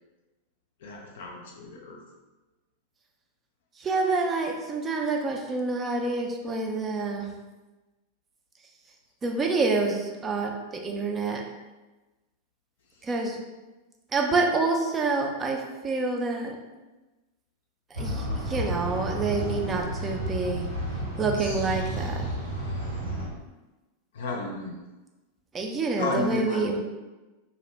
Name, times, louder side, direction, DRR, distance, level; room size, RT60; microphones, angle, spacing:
voice 1, 0.8-2.0 13.0-13.1 24.1-24.8 26.0-26.7, left 2 dB, 60° left, -1 dB, 0.4 m, -32 dB
voice 2, 3.8-7.3 9.2-11.4 13.0-13.4 14.1-16.6 17.9-20.7 21.2-22.2 25.5-26.8, right 3 dB, 20° right, 2 dB, 0.4 m, -27 dB
sound 1, 17.9-23.3, right 1 dB, 85° right, 1.3 m, -31 dB
2.6 x 2.1 x 3.2 m, 1.1 s
figure-of-eight pair, 90°, 0 cm